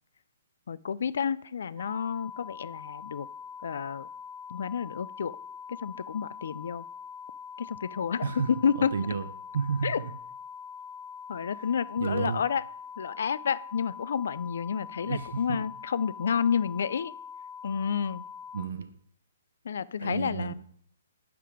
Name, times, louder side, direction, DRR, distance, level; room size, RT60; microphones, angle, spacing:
voice 1, 0.7-3.3 3.6-4.1 4.5-5.3 5.7-6.8 7.6-8.9 9.8-10.0 11.3-12.6 13.0-17.1 17.6-18.2 19.6-20.5, left 7 dB, 65° left, 19 dB, 0.3 m, -30 dB
sound 1, 1.8-18.6, left 6 dB, 15° right, 0.9 m, -43 dB
voice 2, 8.9-9.3 9.5-10.1 12.0-12.4 15.0-15.6 18.5-18.9 20.0-20.5, right 5 dB, 65° right, 10 dB, 0.8 m, -31 dB
10.0 x 3.6 x 4.9 m, 0.67 s
hypercardioid pair, 160°, 0 cm